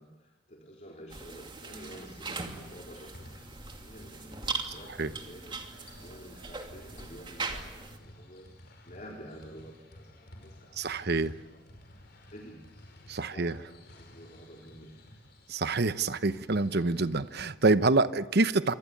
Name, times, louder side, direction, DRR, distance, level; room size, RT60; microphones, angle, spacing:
voice 1, 0.0-11.1 11.4-12.6 13.3-15.3, equal, 40° left, 1 dB, 4.0 m, -50 dB
sound 1, 1.1-8.0, right 4 dB, 25° right, 2.7 m, -40 dB
sound 2, 1.6-17.4, left 1 dB, 60° left, 5.5 m, -53 dB
voice 2, 10.8-11.3 13.1-13.6 15.5-18.7, right 3 dB, 55° right, 12 dB, 1.0 m, -26 dB
27.5 x 24.5 x 8.6 m, 1.1 s
head